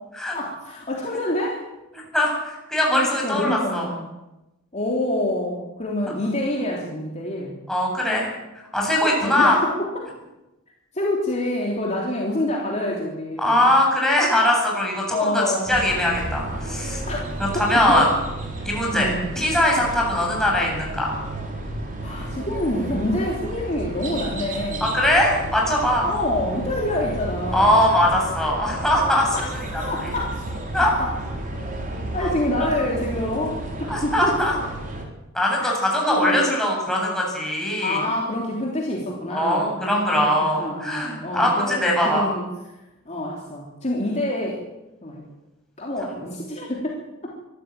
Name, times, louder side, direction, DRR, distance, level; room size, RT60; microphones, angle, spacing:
voice 1, 0.3-1.6 2.9-4.1 4.7-7.5 9.2-10.1 10.9-13.7 15.1-15.8 17.1-18.1 18.6-18.7 18.9-19.3 22.0-25.0 26.0-27.8 29.3-30.4 30.8-31.1 32.1-34.4 35.6-35.7 36.1-36.6 37.8-40.3 40.6-42.5 43.0-44.6 45.0-45.2 45.8-47.3, left 1 dB, 30° left, -2 dB, 3.3 m, -27 dB
voice 2, 2.1-3.9 7.7-8.3 8.7-9.6 13.4-17.0 17.4-18.1 18.6-21.1 24.8-26.1 27.5-29.4 29.7-29.8 30.7-30.9 32.2-32.3 32.6-32.7 33.9-34.5 35.3-38.0 39.3-42.3, left 1 dB, ahead, -2 dB, 7.9 m, -21 dB
sound 1, 15.7-35.1, right 1 dB, 40° right, 4.1 m, -32 dB
24.0 x 13.5 x 9.1 m, 0.99 s
head